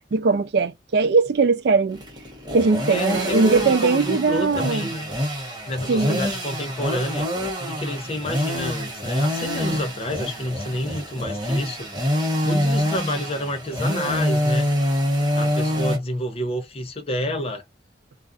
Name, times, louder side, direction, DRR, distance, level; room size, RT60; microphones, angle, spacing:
voice 1, 0.1-2.0 2.5-4.9 5.9-6.2, right 4 dB, 60° right, 0.4 m, -20 dB
sound 1, 1.9-16.0, equal, 20° right, 0.8 m, -25 dB
voice 2, 2.9-5.1 5.7-11.9 12.2-14.7 15.3-17.6, equal, 30° left, 0.5 m, -29 dB
2.4 x 2.4 x 2.3 m
head